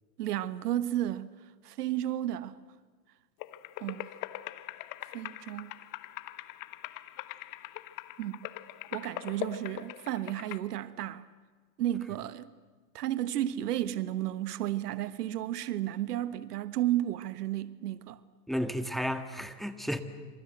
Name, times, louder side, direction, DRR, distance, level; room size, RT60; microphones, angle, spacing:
voice 1, 0.2-1.3 1.6-2.6 3.8-4.1 5.1-5.7 8.2-8.4 8.9-11.3 11.8-12.5 12.9-18.2, right 13 dB, 65° right, 1.3 m, -33 dB
sound 1, 3.4-10.6, left 16 dB, 40° left, 1.4 m, -42 dB
voice 2, 18.5-20.0, equal, ahead, 1.8 m, -32 dB
26.5 x 26.0 x 7.8 m
hypercardioid pair, 100°, 50 cm